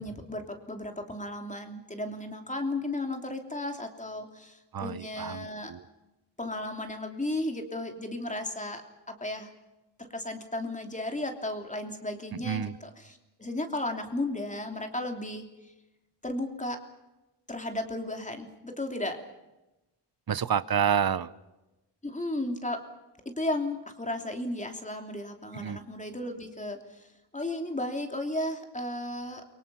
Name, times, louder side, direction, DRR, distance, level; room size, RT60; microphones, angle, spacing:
voice 1, 0.0-5.7 6.4-8.8 9.1-9.5 10.0-15.4 16.2-16.8 17.5-19.2 22.0-22.8 23.4-27.1 27.3-29.4, left 1 dB, 15° left, 4 dB, 3.0 m, -34 dB
voice 2, 4.7-5.8 12.3-12.7 20.3-21.3 25.5-25.8, right 8 dB, 55° right, 16 dB, 0.9 m, -29 dB
29.0 x 24.0 x 5.6 m, 1.0 s
wide cardioid pair, 150°, 42 cm